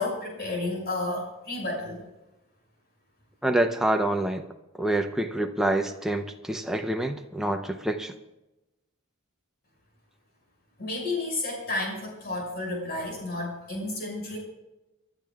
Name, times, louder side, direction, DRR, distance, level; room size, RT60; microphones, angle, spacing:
voice 1, 0.0-2.0 10.8-14.4, left 2 dB, 45° left, -1 dB, 6.0 m, -31 dB
voice 2, 3.4-4.5 4.8-8.1, right 1 dB, ahead, 4 dB, 0.8 m, -26 dB
29.5 x 12.0 x 2.5 m, 0.99 s
head